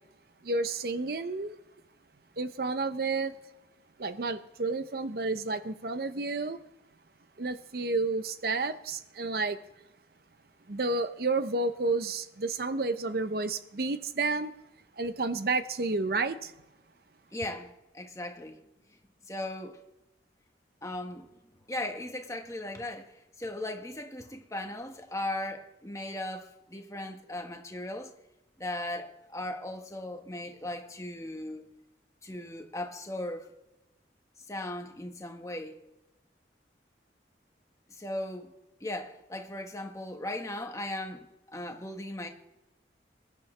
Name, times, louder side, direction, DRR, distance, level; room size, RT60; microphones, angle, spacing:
voice 1, 0.4-1.6 2.4-3.3 4.0-6.6 7.4-9.6 10.7-14.5 15.0-16.5, right 3 dB, 55° right, 0.7 m, -30 dB
voice 2, 17.3-18.6 19.3-19.8 20.8-21.4 21.7-28.1 28.6-31.7 32.2-33.5 34.5-35.8 37.9-38.5 38.8-42.3, left 1 dB, 15° left, 1.4 m, -37 dB
22.0 x 11.5 x 3.3 m
head